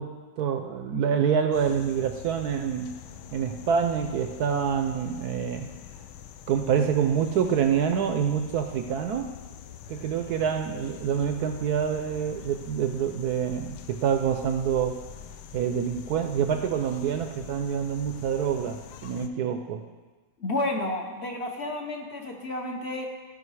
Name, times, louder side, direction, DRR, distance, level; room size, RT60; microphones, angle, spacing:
voice 1, 0.0-3.0 3.3-5.7 6.5-9.3 9.9-15.0 15.5-19.8, right 7 dB, 70° right, 5 dB, 0.9 m, -26 dB
sound 1, 1.5-19.3, left 9 dB, 75° left, 1.1 m, -45 dB
voice 2, 20.4-23.1, left 2 dB, 55° left, 2 dB, 0.7 m, -31 dB
14.5 x 5.3 x 4.7 m, 1.3 s
omnidirectional pair, 2.1 m